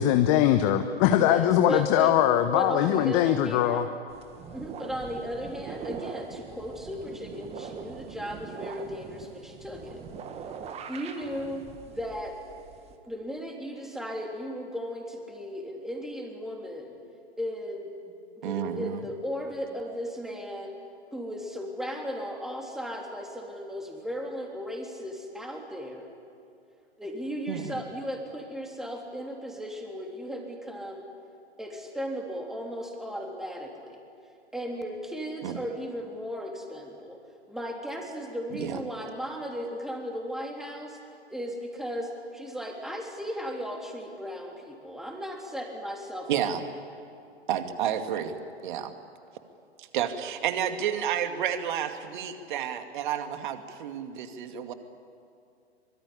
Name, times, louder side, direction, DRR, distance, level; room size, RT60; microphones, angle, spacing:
voice 1, 0.0-3.9, left 11 dB, 30° left, 9 dB, 1.0 m, -22 dB
voice 2, 1.2-2.1 2.5-3.9 4.5-10.0 10.9-12.3 13.0-17.0 17.4-17.9 18.4-20.7 21.1-26.1 27.0-31.0 31.6-34.0 34.5-37.2 37.5-41.0 41.3-46.5, equal, ahead, 1 dB, 3.4 m, -36 dB
sound 1, 4.1-12.9, right 6 dB, 20° right, 1.8 m, -42 dB
voice 3, 18.4-19.0 27.5-27.8 35.4-35.6 38.5-38.8 46.3-46.6 47.5-48.3 48.6-48.9 49.8-54.7, right 9 dB, 45° right, 7 dB, 2.3 m, -30 dB
24.5 x 23.5 x 9.9 m, 2.5 s
figure-of-eight pair, 115°, 33 cm